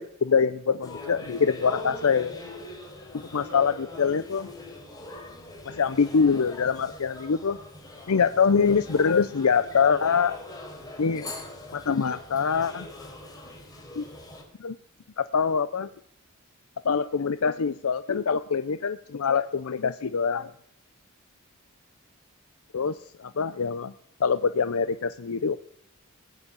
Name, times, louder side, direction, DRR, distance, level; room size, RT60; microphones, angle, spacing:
voice 1, 0.0-2.4 3.3-4.5 5.7-7.6 8.1-10.4 11.0-11.3 11.7-12.9 14.0-14.1 14.6-14.8 15.2-15.9 16.8-20.5 22.7-23.9 24.2-25.6, left 6 dB, 80° left, 12 dB, 0.6 m, -24 dB
sound 1, 0.8-14.4, left 2 dB, 15° left, 4.5 m, -42 dB
19.0 x 8.0 x 8.5 m, 0.66 s
head